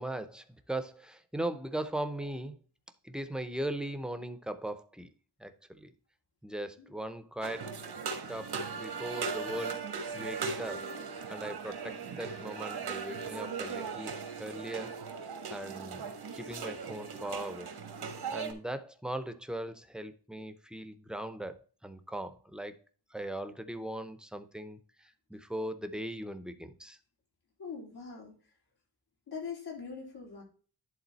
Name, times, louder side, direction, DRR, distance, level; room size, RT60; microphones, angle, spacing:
voice 1, 0.0-2.6 3.0-5.1 5.4-5.9 6.4-7.7 8.3-9.8 10.1-10.9 11.3-14.9 15.5-16.1 16.3-17.7 18.3-22.7 23.1-27.0, right 1 dB, ahead, 0.7 m, -39 dB
sound 1, 7.4-18.5, right 5 dB, 80° right, 1.4 m, -38 dB
voice 2, 27.6-28.3 29.3-30.4, left 5 dB, 80° left, 3.7 m, -41 dB
11.0 x 3.8 x 4.1 m
wide cardioid pair, 120°, 38 cm